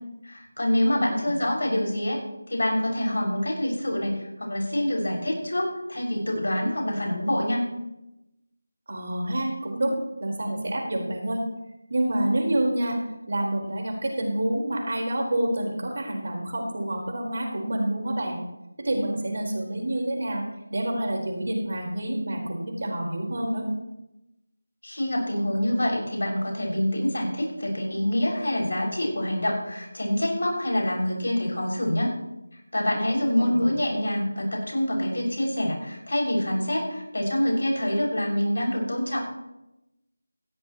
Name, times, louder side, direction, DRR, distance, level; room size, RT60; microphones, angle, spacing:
voice 1, 0.2-2.2 2.5-7.7 24.8-32.1 32.7-39.3, left 1 dB, 65° left, 0 dB, 6.7 m, -26 dB
voice 2, 8.9-11.4 11.9-13.0 13.3-18.4 18.8-20.4 20.7-23.7 33.3-33.7, right 1 dB, 50° right, 0 dB, 4.6 m, -28 dB
19.0 x 15.5 x 3.2 m, 0.92 s
figure-of-eight pair, 165°, 0 cm